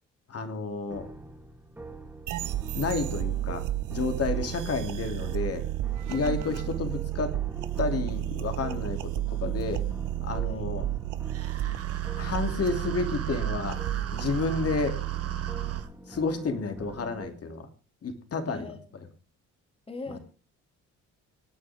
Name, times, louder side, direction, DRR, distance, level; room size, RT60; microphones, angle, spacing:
voice 1, 0.3-1.1 2.7-5.6 6.1-7.3 7.8-9.0 9.4-9.8 10.2-10.8 12.2-13.8 14.1-15.0 16.1-17.7 18.0-18.7, left 4 dB, 50° left, 6 dB, 2.9 m, -30 dB
sound 1, 0.9-17.3, right 1 dB, 5° right, 2.8 m, -44 dB
sound 2, 2.3-15.8, right 14 dB, 85° right, 1.0 m, -32 dB
voice 2, 6.1-6.6 10.4-10.7 18.5-18.8 19.9-20.2, left 2 dB, 20° left, 5 dB, 3.6 m, -41 dB
sound 3, 11.3-15.9, right 7 dB, 50° right, 1.6 m, -42 dB
25.0 x 9.2 x 3.6 m, 0.35 s
cardioid pair, 90°, 30 cm